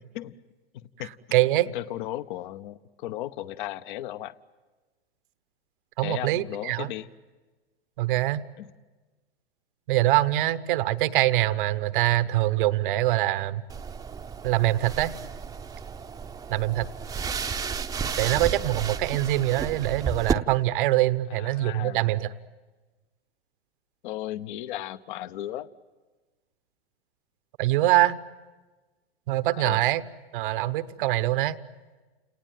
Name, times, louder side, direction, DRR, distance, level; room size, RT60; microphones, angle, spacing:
voice 1, 0.7-1.1 1.7-4.3 6.0-7.1 8.6-8.7 21.4-22.0 24.0-25.7 29.6-29.8, left 14 dB, 50° left, 16 dB, 0.9 m, -35 dB
voice 2, 1.3-1.7 6.0-6.9 8.0-8.4 9.9-13.6 14.4-15.1 16.5-16.9 18.2-22.3 27.6-28.2 29.3-30.0 30.3-31.6, right 15 dB, 55° right, 14 dB, 0.9 m, -24 dB
sound 1, 13.7-20.3, right 6 dB, 10° right, 0.7 m, -32 dB
29.5 x 19.0 x 9.2 m, 1.3 s
hypercardioid pair, 115°, 31 cm